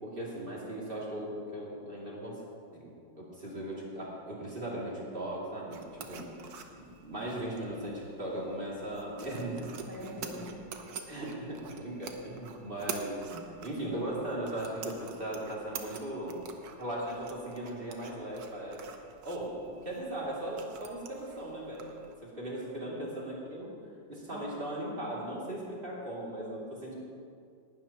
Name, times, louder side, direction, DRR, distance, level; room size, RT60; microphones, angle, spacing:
voice 1, 0.0-2.4 2.7-9.7 11.1-13.2 13.6-16.4 16.8-18.8 19.2-21.9 22.2-23.7 24.1-26.9, right 1 dB, 30° right, -5 dB, 2.8 m, -38 dB
sound 1, 5.7-22.1, right 5 dB, 60° right, 1.3 m, -47 dB
voice 2, 9.9-10.8 13.3-13.4 24.3-24.5 24.9-25.8, equal, 10° left, -4 dB, 1.3 m, -46 dB
19.5 x 12.0 x 3.0 m, 2.3 s
omnidirectional pair, 2.0 m